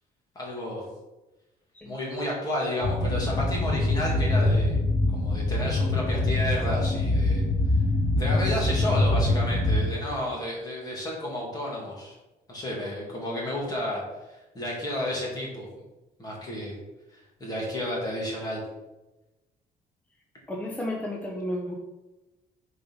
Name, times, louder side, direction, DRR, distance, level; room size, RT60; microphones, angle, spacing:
voice 1, 0.4-0.8 1.8-4.8 5.1-7.4 8.2-12.2 12.5-14.0 14.5-15.7 16.2-16.7 17.4-18.6, left 1 dB, 25° left, -3 dB, 2.3 m, -31 dB
sound 1, 2.8-9.9, left 2 dB, 90° left, 1.7 m, -24 dB
voice 2, 20.5-21.7, left 1 dB, 10° left, 0 dB, 0.8 m, -32 dB
7.1 x 4.4 x 5.6 m, 1.0 s
cardioid pair, 170°, 15 cm